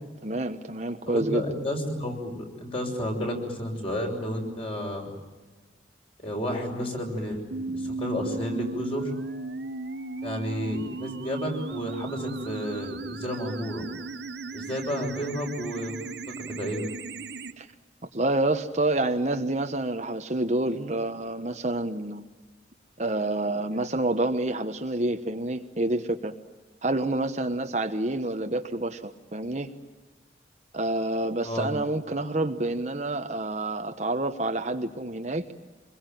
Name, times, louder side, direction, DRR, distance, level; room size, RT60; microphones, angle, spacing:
voice 1, 0.2-1.4 17.6-17.7 18.1-22.2 23.0-26.3 26.8-29.7 30.7-35.4, right 2 dB, 40° right, 6 dB, 1.2 m, -28 dB
voice 2, 1.1-2.3 2.6-5.1 6.2-9.1 10.2-13.8 14.5-15.9 16.5-16.8 31.4-31.7, equal, 30° left, 1 dB, 6.6 m, -31 dB
sound 1, 7.5-17.5, right 3 dB, 65° right, 1.2 m, -36 dB
27.0 x 22.0 x 9.4 m, 1.3 s
head